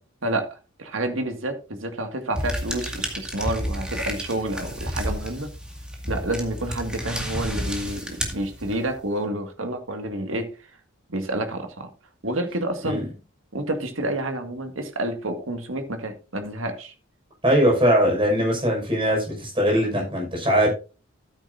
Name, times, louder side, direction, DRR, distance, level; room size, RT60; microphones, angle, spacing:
voice 1, 0.2-5.5 6.1-10.5 11.1-11.9 12.2-13.0 13.5-16.9, right 1 dB, 75° right, 1.9 m, -29 dB
sound 1, 2.3-9.0, equal, 5° right, 2.0 m, -31 dB
voice 2, 17.4-20.7, equal, 25° right, 5.5 m, -21 dB
14.0 x 8.8 x 2.6 m
head